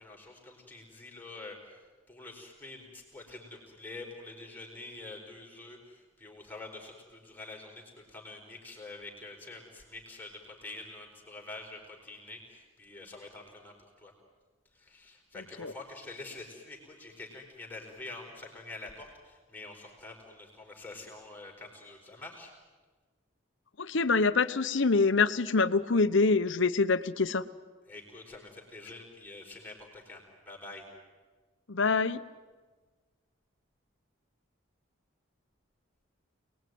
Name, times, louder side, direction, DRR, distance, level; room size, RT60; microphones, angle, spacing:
voice 1, 0.0-14.1 14.7-22.5 27.9-30.9, left 2 dB, 10° left, -1 dB, 4.5 m, -46 dB
voice 2, 23.8-27.4 31.7-32.2, left 4 dB, 70° left, 12 dB, 0.9 m, -25 dB
28.0 x 20.0 x 9.4 m, 1.4 s
head